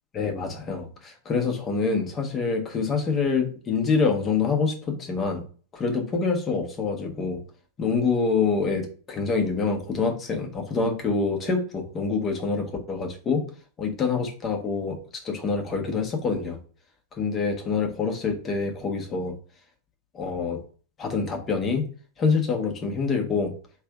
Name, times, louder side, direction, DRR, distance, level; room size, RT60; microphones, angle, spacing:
voice 1, 0.1-5.4 5.7-7.4 7.8-13.4 13.8-15.0 15.2-16.6 17.1-19.3 20.1-20.6 21.0-21.8 22.2-23.5, left 4 dB, 25° left, 2 dB, 1.3 m, -26 dB
3.3 x 3.3 x 4.9 m, 0.41 s
figure-of-eight pair, 90°, 0 cm